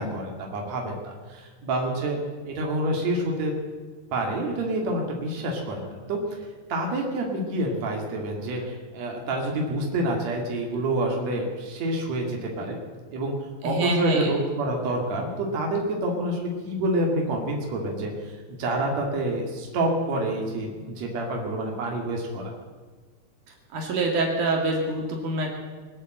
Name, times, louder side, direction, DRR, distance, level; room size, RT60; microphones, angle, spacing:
voice 1, 0.0-2.2 2.4-3.5 4.1-6.2 6.7-12.8 13.1-13.3 13.6-22.5, right 1 dB, 60° right, 0 dB, 3.5 m, -28 dB
voice 2, 13.6-14.3 23.7-25.5, right 2 dB, 80° right, 0 dB, 3.6 m, -25 dB
22.5 x 8.3 x 7.8 m, 1.4 s
omnidirectional pair, 3.5 m